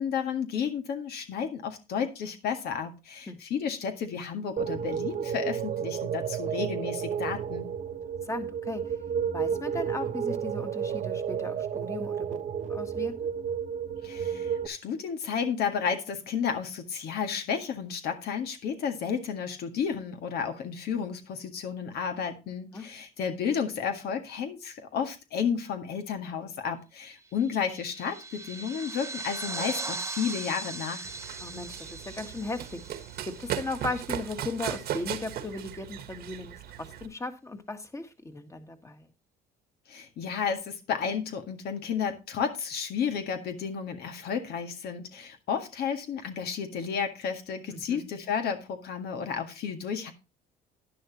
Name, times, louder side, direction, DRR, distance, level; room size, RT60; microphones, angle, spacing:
voice 1, 0.0-7.7 14.0-31.1 39.9-50.1, left 7 dB, 70° left, 6 dB, 1.8 m, -32 dB
sound 1, 4.6-14.7, right 8 dB, 50° right, 1.0 m, -32 dB
voice 2, 8.3-9.0 9.3-13.3 22.7-22.9 31.4-33.0 33.3-39.1 47.7-48.1, left 2 dB, 15° left, 8 dB, 1.7 m, -37 dB
sound 2, 27.4-34.2, right 3 dB, 15° right, 0.9 m, -39 dB
Run, 31.0-37.1, right 11 dB, 65° right, 1.4 m, -37 dB
11.0 x 10.5 x 2.9 m, 0.27 s
cardioid pair, 110°, 17 cm